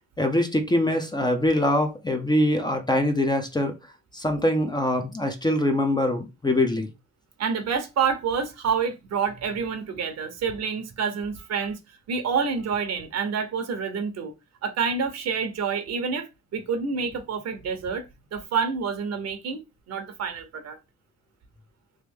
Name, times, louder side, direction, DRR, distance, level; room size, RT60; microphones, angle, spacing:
voice 1, 0.2-3.7 4.1-6.9, left 1 dB, 15° left, 0.6 m, -23 dB
voice 2, 7.4-11.8 12.1-14.3 14.6-18.0 18.3-19.6 19.9-20.8, right 6 dB, 60° right, 0.8 m, -28 dB
3.1 x 2.6 x 3.5 m
cardioid pair, 90°, 30 cm